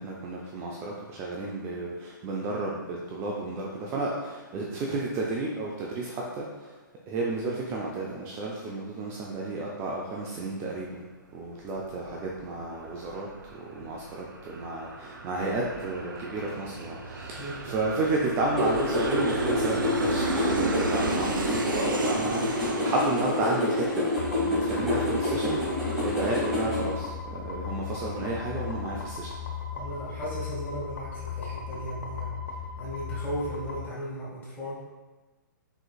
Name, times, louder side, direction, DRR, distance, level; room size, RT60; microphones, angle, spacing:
voice 1, 0.0-6.7 7.1-11.0 11.3-25.6 26.0-29.3, right 2 dB, 25° right, -2 dB, 0.5 m, -32 dB
Aircraft, 11.6-24.8, right 3 dB, 75° right, 0.6 m, -34 dB
voice 2, 17.4-17.7 29.7-34.8, right 1 dB, 15° left, -8 dB, 1.5 m, -36 dB
sound 1, 18.6-26.8, left 1 dB, 5° right, 1.3 m, -28 dB
sound 2, 24.2-33.8, left 7 dB, 60° left, 0.8 m, -37 dB
5.0 x 3.8 x 2.3 m, 1.2 s
figure-of-eight pair, 125°, 11 cm